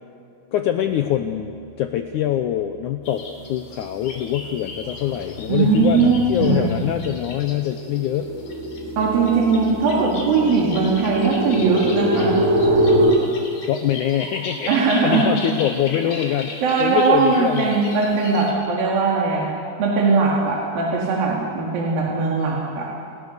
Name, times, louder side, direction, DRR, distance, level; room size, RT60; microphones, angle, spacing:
voice 1, 0.5-1.5 1.8-3.2 3.5-8.3 13.7-14.7 15.0-17.8, left 11 dB, 90° left, 7 dB, 1.7 m, -23 dB
Reed Warblers, 3.0-18.5, left 3 dB, 70° left, 5.0 m, -37 dB
sound 1, 3.4-3.8 4.2-13.1, equal, 20° right, 2.7 m, -24 dB
voice 2, 5.5-6.7 9.0-12.4 14.7-15.3 16.6-19.5 19.8-22.9, right 4 dB, 65° right, -3 dB, 4.1 m, -20 dB
29.0 x 20.5 x 6.6 m, 2.7 s
omnidirectional pair, 4.5 m